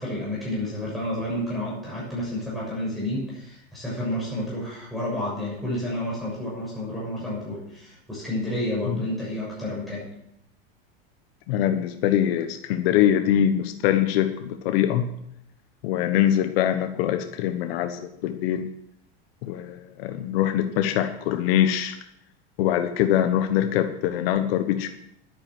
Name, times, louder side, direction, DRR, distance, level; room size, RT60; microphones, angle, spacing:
voice 1, 0.0-10.1, left 1 dB, ahead, -7 dB, 6.7 m, -30 dB
voice 2, 11.5-15.1 15.8-18.7 19.4-22.0 22.6-24.9, left 11 dB, 70° left, 7 dB, 1.2 m, -23 dB
10.5 x 9.9 x 7.9 m, 0.78 s
supercardioid pair, 140°, 31 cm